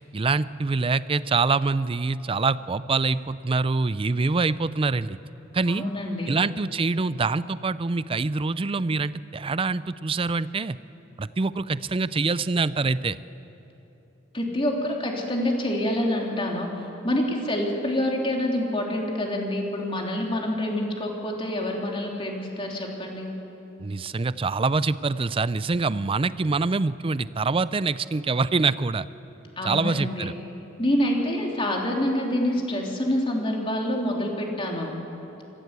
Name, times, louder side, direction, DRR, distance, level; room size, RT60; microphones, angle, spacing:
voice 1, 0.1-5.2 5.5-5.8 6.3-10.8 11.2-13.2 23.8-29.1 29.6-30.3, right 4 dB, 30° right, 16 dB, 0.4 m, -25 dB
voice 2, 5.7-6.4 14.3-23.3 29.6-30.3 30.8-34.9, left 1 dB, 30° left, 0 dB, 3.2 m, -27 dB
25.0 x 15.5 x 8.2 m, 3.0 s
head